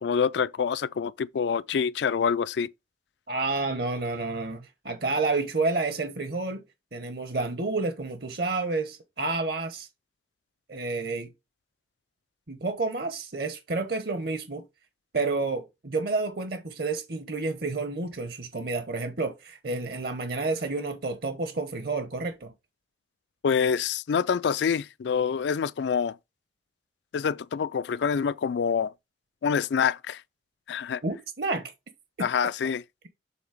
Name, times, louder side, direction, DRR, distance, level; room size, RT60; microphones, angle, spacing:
voice 1, 0.0-2.7 23.4-26.2 27.1-28.9 29.4-30.2 30.7-31.0 32.2-32.8, left 6 dB, 70° left, 0.3 m, -26 dB
voice 2, 3.3-6.6 6.9-9.9 10.7-11.3 12.5-14.6 15.1-22.5 31.0-31.7 32.2-32.3, right 3 dB, 55° right, 0.9 m, -30 dB
7.0 x 3.9 x 4.9 m
head